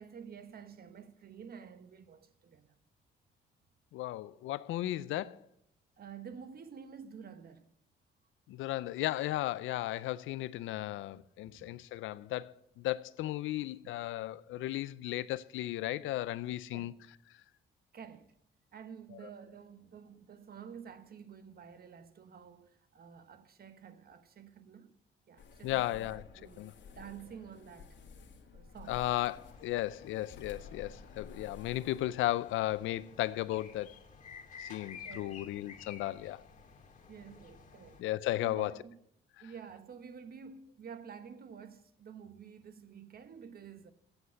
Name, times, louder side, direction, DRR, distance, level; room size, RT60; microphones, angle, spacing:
voice 1, 0.0-2.8 6.0-7.7 11.4-11.8 14.1-14.2 16.7-16.9 17.9-18.3 18.7-25.0 25.3-28.0 28.5-29.0 35.0-35.5 37.1-38.0 38.4-39.0 39.4-43.9, right 7 dB, 50° right, 1.1 m, -50 dB
voice 2, 3.9-5.4 8.5-16.9 25.6-26.2 26.6-26.7 28.9-33.9 34.6-36.4 38.0-38.7, left 15 dB, 85° left, 0.5 m, -35 dB
sound 1, 25.4-32.2, left 5 dB, 65° left, 1.7 m, -53 dB
sound 2, 28.8-38.0, left 6 dB, 40° left, 2.1 m, -53 dB
8.0 x 7.9 x 8.3 m
cardioid pair, 90°, 20 cm